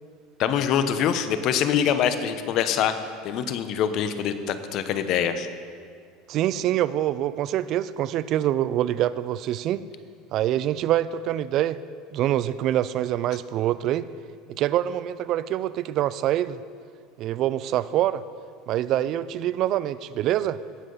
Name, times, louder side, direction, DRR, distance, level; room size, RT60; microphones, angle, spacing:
voice 1, 0.4-3.0 3.2-5.5, left 8 dB, 55° left, 10 dB, 0.9 m, -24 dB
voice 2, 6.3-9.8 10.3-11.8 12.1-14.1 14.5-16.6 17.2-18.2 18.7-20.6, right 12 dB, 55° right, 17 dB, 0.4 m, -25 dB
18.5 x 7.5 x 4.0 m, 2.1 s
hypercardioid pair, 85°, 0 cm